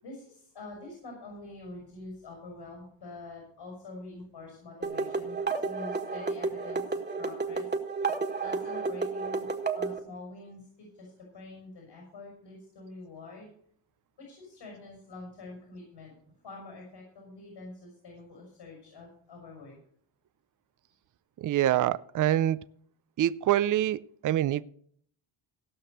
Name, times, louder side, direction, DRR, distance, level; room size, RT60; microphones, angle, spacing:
voice 1, 0.0-6.8 7.2-7.7 8.4-9.5 9.7-13.5 14.2-16.1 16.4-19.7, left 2 dB, 75° left, 6.1 m, -46 dB
sound 1, 4.8-10.0, right 4 dB, 20° right, 1.7 m, -31 dB
voice 2, 21.4-22.6 23.2-24.6, right 12 dB, 45° right, 0.5 m, -25 dB
17.0 x 5.9 x 6.6 m
cardioid pair, 70°, 45 cm